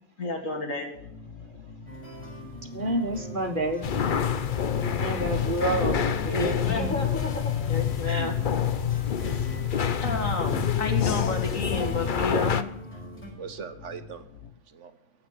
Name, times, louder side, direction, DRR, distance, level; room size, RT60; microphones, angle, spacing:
voice 1, 0.2-0.9 5.7-5.8 6.3-8.3 9.3-9.5 10.0-12.7, left 2 dB, 85° left, 2.9 m, -31 dB
sound 1, 0.9-14.5, left 4 dB, 60° left, 1.7 m, -46 dB
sound 2, 1.9-13.3, right 1 dB, 10° left, 5.9 m, -42 dB
voice 2, 2.7-3.8 4.8-6.9 8.1-8.6 9.8-10.0, right 1 dB, 40° right, 1.8 m, -30 dB
sound 3, 3.8-12.6, left 8 dB, 45° left, 0.8 m, -27 dB
voice 3, 11.9-12.3 13.4-15.3, right 6 dB, 65° right, 1.4 m, -42 dB
15.5 x 5.9 x 9.7 m
omnidirectional pair, 1.3 m